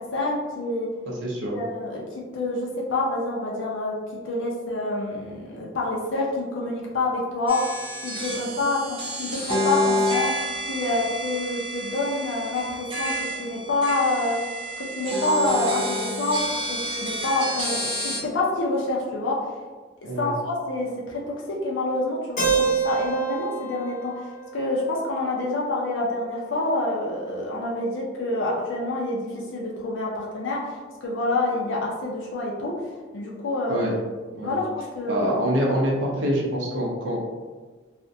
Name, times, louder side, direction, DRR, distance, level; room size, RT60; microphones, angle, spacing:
voice 1, 0.0-0.9 1.5-2.0 2.3-3.9 4.2-7.6 8.0-10.3 10.7-13.1 13.4-14.4 14.9-16.4 16.7-19.3 20.2-21.2 21.5-32.7 33.1-33.9 34.4-34.6 34.9-35.3, left 2 dB, 90° left, -3 dB, 0.5 m, -27 dB
voice 2, 1.1-1.5 20.0-20.3 33.7-33.9 34.3-34.6 35.1-37.2, equal, 80° right, -3 dB, 0.5 m, -25 dB
sound 1, 7.5-18.2, equal, 30° right, 0.5 m, -29 dB
Keyboard (musical), 22.4-26.3, right 6 dB, 45° left, 0.8 m, -28 dB
2.4 x 2.1 x 2.6 m, 1.4 s
head